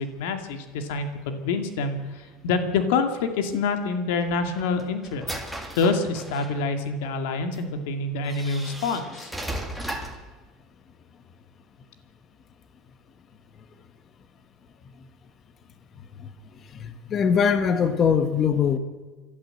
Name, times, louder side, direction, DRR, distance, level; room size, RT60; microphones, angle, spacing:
voice 1, 0.0-5.4 5.8-9.3, left 4 dB, 90° left, 7 dB, 2.2 m, -27 dB
sound 1, 4.2-6.7 7.5-7.6 8.2-10.3, right 1 dB, ahead, 2.0 m, -36 dB
voice 2, 16.2-18.8, left 7 dB, 30° left, 10 dB, 1.1 m, -23 dB
29.0 x 12.5 x 7.9 m, 1.3 s
cardioid pair, 155°, 0 cm